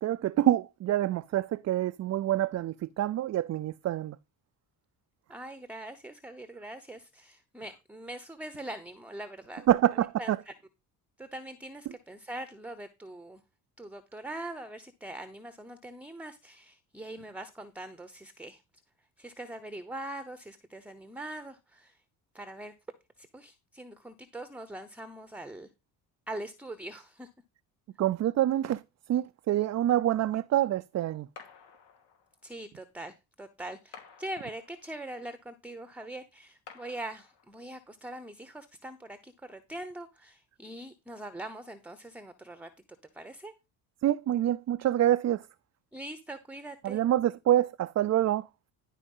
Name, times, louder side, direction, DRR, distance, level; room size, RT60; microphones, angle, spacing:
voice 1, 0.0-4.2 9.7-10.4 28.0-28.8 29.1-31.3 44.0-45.5 46.8-48.5, right 12 dB, 40° right, 0.4 m, -26 dB
voice 2, 5.3-9.6 10.2-10.5 11.2-13.4 13.8-18.6 19.2-22.0 22.3-22.7 23.2-25.7 26.3-27.3 32.4-42.7 43.1-43.5 45.9-47.0, right 1 dB, 5° right, 0.8 m, -42 dB
sound 1, 31.4-32.5 33.9-35.1 36.7-37.7, left 6 dB, 90° left, 2.9 m, -53 dB
11.0 x 4.6 x 5.4 m
cardioid pair, 115°, 41 cm